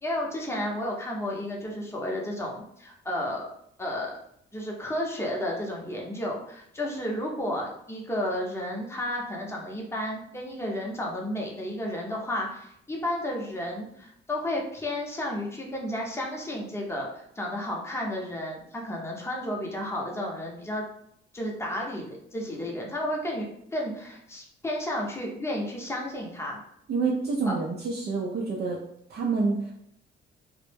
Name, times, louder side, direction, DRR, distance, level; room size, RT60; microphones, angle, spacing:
voice 1, 0.0-3.5 3.8-4.1 4.5-20.8 21.3-23.5 23.7-26.6 27.5-27.6, left 1 dB, 15° left, -1 dB, 0.7 m, -32 dB
voice 2, 26.9-28.8 29.1-29.7, right 4 dB, 55° right, -1 dB, 0.5 m, -27 dB
2.0 x 2.0 x 3.2 m, 0.73 s
cardioid pair, 90°, 20 cm